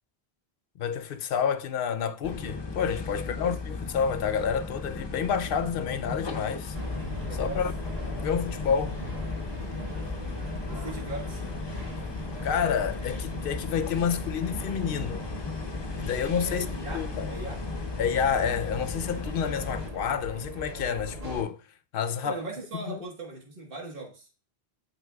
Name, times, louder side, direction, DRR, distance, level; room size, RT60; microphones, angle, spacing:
voice 1, 0.8-6.8 7.3-7.7 8.1-9.0 12.4-15.3 16.0-17.3 18.0-21.6 21.9-22.4 22.7-23.0, left 7 dB, 65° left, 0.7 m, -29 dB
sound 1, 2.2-19.9, left 4 dB, 30° left, 0.6 m, -36 dB
voice 2, 3.1-3.5 7.3-7.6 10.7-11.4 16.4-17.6 22.2-24.3, right 2 dB, 60° right, 1.6 m, -39 dB
sound 2, 6.7-21.4, left 1 dB, 40° right, 1.6 m, -38 dB
12.5 x 4.3 x 2.3 m
omnidirectional pair, 1.0 m